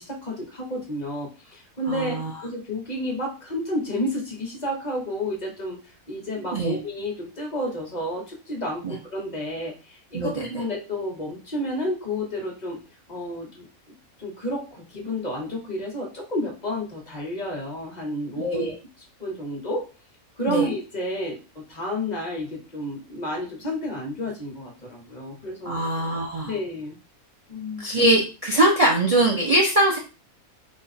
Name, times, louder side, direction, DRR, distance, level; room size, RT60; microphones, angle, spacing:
voice 1, 0.0-12.8 13.1-18.7 19.2-19.9 20.4-25.8 26.4-27.0 27.5-27.9, left 1 dB, 30° left, -1 dB, 1.0 m, -31 dB
voice 2, 1.9-2.3 6.5-6.8 8.8-8.9 10.1-10.5 18.4-18.7 20.5-20.6 25.6-26.5 27.8-30.0, right 1 dB, 70° right, -2 dB, 0.3 m, -22 dB
3.3 x 2.3 x 4.1 m, 0.32 s
omnidirectional pair, 1.6 m